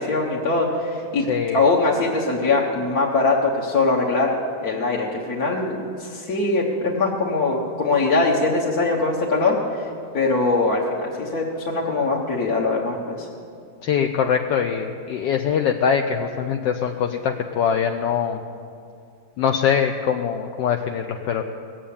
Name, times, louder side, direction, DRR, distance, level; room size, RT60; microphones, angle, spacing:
voice 1, 0.0-1.3 1.5-4.3 4.6-9.9 10.1-13.3, left 3 dB, 50° left, -4 dB, 1.7 m, -22 dB
voice 2, 1.3-1.6 13.8-18.4 19.4-21.4, left 7 dB, 75° left, 4 dB, 1.2 m, -23 dB
18.5 x 7.7 x 8.5 m, 2.3 s
omnidirectional pair, 2.1 m